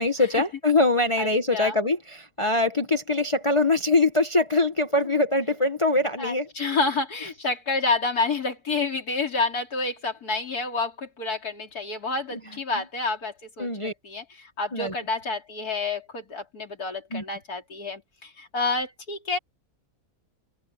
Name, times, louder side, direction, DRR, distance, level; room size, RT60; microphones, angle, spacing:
voice 1, 0.0-6.5 12.3-12.4 13.6-13.9 14.7-14.9 17.1-17.2, left 2 dB, 25° left, 1.0 m, -23 dB
voice 2, 1.2-1.8 6.2-19.4, left 3 dB, 80° left, 3.9 m, -29 dB
open air
omnidirectional pair, 1.6 m